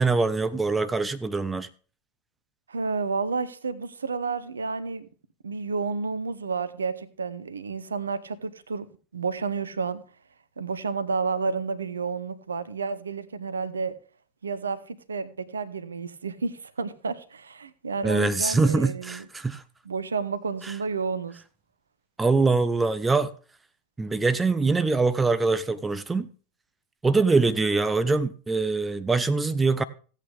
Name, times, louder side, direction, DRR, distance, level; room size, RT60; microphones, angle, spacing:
voice 1, 0.0-1.7 18.0-19.6 20.6-20.7 22.2-23.3 24.0-26.3 27.0-29.8, right 3 dB, 10° right, 0.6 m, -23 dB
voice 2, 2.7-5.1 5.4-10.0 10.6-13.9 14.4-19.2 19.9-21.4, right 4 dB, 70° right, 0.8 m, -31 dB
16.0 x 8.3 x 3.5 m
figure-of-eight pair, 90°, 0 cm